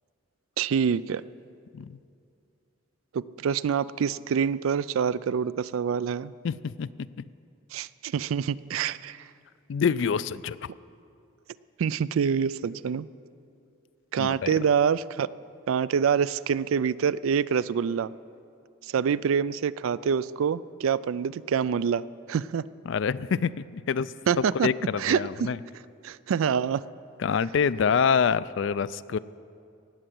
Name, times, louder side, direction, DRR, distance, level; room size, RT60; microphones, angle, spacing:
voice 1, 0.6-1.2 3.1-6.3 7.7-9.2 11.8-13.1 14.1-15.3 15.7-18.1 18.8-22.6 24.3-24.7 25.0-25.5 26.0-26.8, right 7 dB, 85° right, 18 dB, 0.3 m, -26 dB
voice 2, 6.4-6.9 7.2-7.3 9.7-10.7 14.2-14.5 22.9-25.6 27.2-29.2, left 6 dB, 65° left, 17 dB, 0.3 m, -26 dB
18.5 x 7.9 x 7.7 m, 2.5 s
head